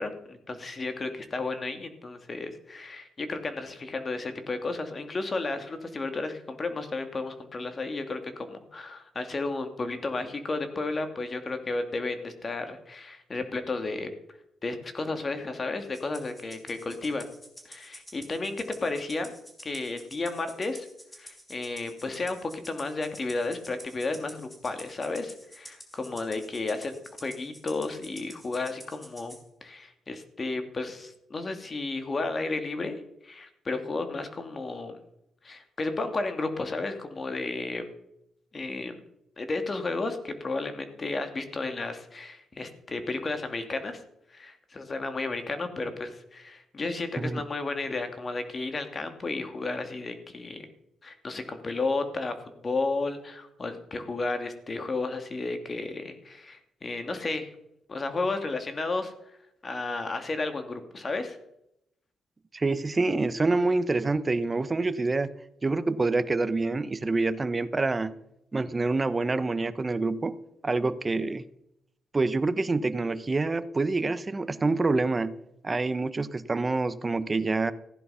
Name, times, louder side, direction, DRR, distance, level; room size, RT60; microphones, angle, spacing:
voice 1, 0.0-14.1 14.6-17.3 17.6-19.3 19.6-20.9 21.2-26.9 27.2-29.4 29.6-33.0 33.2-35.0 35.4-37.9 38.5-39.0 39.4-44.0 44.3-50.7 51.0-52.3 52.6-57.5 57.9-59.1 59.6-61.4, left 3 dB, 35° left, 7 dB, 2.5 m, -33 dB
Rattle (instrument), 15.9-29.4, equal, 15° left, 4.3 m, -49 dB
voice 2, 62.5-65.3 65.6-68.1 68.5-70.4 70.6-71.4 72.1-75.4 75.6-77.7, right 3 dB, 30° right, 14 dB, 1.0 m, -26 dB
15.5 x 10.5 x 5.7 m, 0.80 s
cardioid pair, 75°, 0 cm